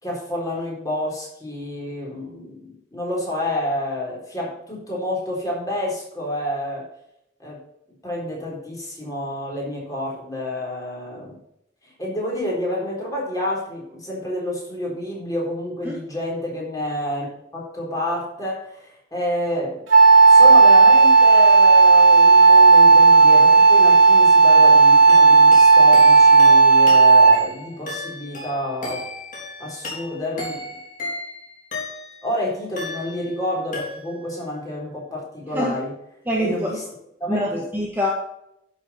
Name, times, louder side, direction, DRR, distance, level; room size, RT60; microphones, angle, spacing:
voice 1, 0.0-6.9 7.4-7.6 8.0-11.4 11.8-19.8 20.3-29.0 29.6-30.8 32.2-35.9 36.4-36.8 37.2-37.6, left 1 dB, 20° left, -3 dB, 3.9 m, -29 dB
Wind instrument woodwind instrument, 19.9-27.5, right 4 dB, 90° right, 2.7 m, -11 dB
sound 1, 25.1-32.3 32.8-33.4 33.7-34.4, left 1 dB, 40° left, 3.6 m, -34 dB
voice 2, 36.3-36.8 37.3-38.1, equal, 10° right, -3 dB, 1.4 m, -24 dB
11.0 x 6.6 x 4.3 m, 0.78 s
head